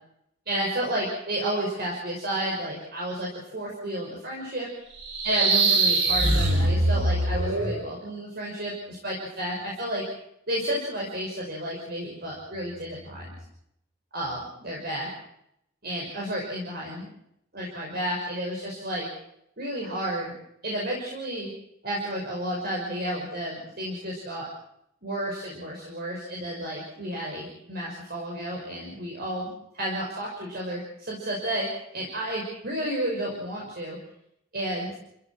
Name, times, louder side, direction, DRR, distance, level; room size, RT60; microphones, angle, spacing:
voice 1, 0.5-4.7 5.2-10.0 10.5-13.3 14.1-15.1 15.8-17.1 17.5-19.1 19.6-20.3 20.6-21.5 21.8-24.5 25.0-34.0 34.5-35.0, right 1 dB, 55° right, -3 dB, 5.9 m, -31 dB
sound 1, 5.0-7.8, right 2 dB, 85° right, 4.4 m, -22 dB
28.5 x 16.5 x 6.3 m, 0.75 s
head